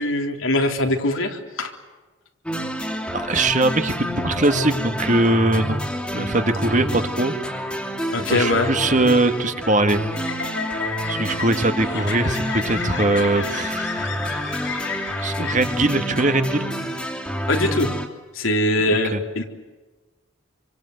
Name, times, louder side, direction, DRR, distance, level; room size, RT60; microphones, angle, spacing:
voice 1, 0.0-1.7 8.1-8.7 17.5-17.9 18.4-19.4, left 1 dB, 90° left, 4 dB, 3.7 m, -22 dB
sound 1, 2.5-18.1, equal, 5° left, 2.6 m, -28 dB
voice 2, 3.1-5.8 6.1-7.7 8.3-10.0 11.1-14.1 15.2-16.7 19.1-19.2, right 2 dB, 40° right, 8 dB, 1.9 m, -21 dB
sound 2, 8.6-16.1, left 5 dB, 65° left, 4.7 m, -32 dB
27.5 x 25.0 x 8.1 m, 1.2 s
head